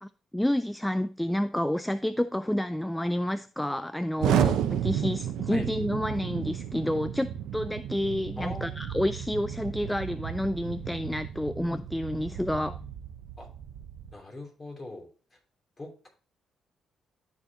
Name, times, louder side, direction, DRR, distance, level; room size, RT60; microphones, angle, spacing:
voice 1, 0.0-12.8, left 1 dB, 5° left, 0.3 m, -29 dB
Explosion, 4.2-14.1, right 10 dB, 85° right, 0.7 m, -32 dB
voice 2, 8.4-8.8 13.4-13.5 14.1-15.1 15.8-16.1, left 2 dB, 25° left, 3.0 m, -41 dB
12.5 x 4.3 x 2.9 m
cardioid pair, 90°, 0 cm